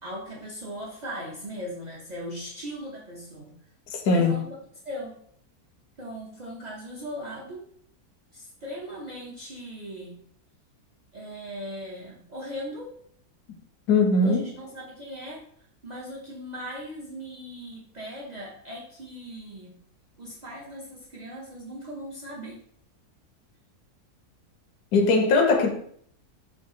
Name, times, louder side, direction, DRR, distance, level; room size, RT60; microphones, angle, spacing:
voice 1, 0.0-3.5 4.0-4.4 4.8-5.2 6.0-7.6 8.3-10.1 11.1-12.9 14.2-15.5 15.8-19.7 20.2-22.6, equal, 65° right, 0.4 m, -38 dB
voice 2, 3.9-4.4 13.9-14.5 24.9-25.7, left 3 dB, 85° left, 1.1 m, -20 dB
3.7 x 2.3 x 3.7 m
omnidirectional pair, 1.7 m